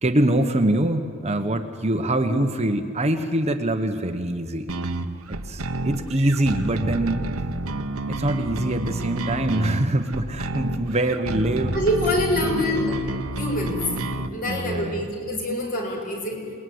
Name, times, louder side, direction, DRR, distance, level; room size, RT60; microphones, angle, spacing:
voice 1, 0.0-4.7 5.3-7.3 8.1-11.8 12.4-12.9 14.4-15.1, right 1 dB, 30° right, 7 dB, 1.2 m, -24 dB
voice 2, 2.0-2.4 11.7-13.0 13.4-13.8 14.3-16.4, left 1 dB, 40° left, 1 dB, 5.8 m, -26 dB
sound 1, 4.7-14.3, right 2 dB, 80° right, 1.3 m, -29 dB
27.5 x 20.5 x 9.6 m, 2.4 s
head